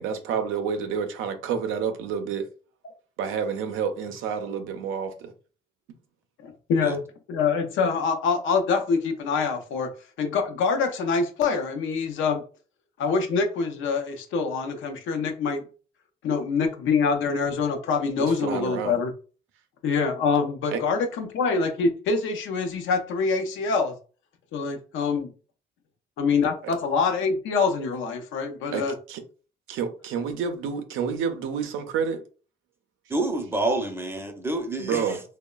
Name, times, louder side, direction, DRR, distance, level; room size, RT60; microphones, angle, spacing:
voice 1, 0.0-2.5 3.2-5.3 18.2-19.0 20.7-20.8 26.6-26.7 28.7-29.2 29.7-32.2 34.8-35.2, right 6 dB, 90° right, 0.5 m, -29 dB
voice 2, 6.4-7.0 7.3-12.4 13.0-15.6 16.2-19.1 19.8-24.0 24.5-25.3 26.2-28.9, left 5 dB, 80° left, 0.5 m, -25 dB
voice 3, 33.1-35.2, right 2 dB, 10° right, 0.5 m, -28 dB
2.9 x 2.0 x 2.2 m
cardioid pair, 90°, 20 cm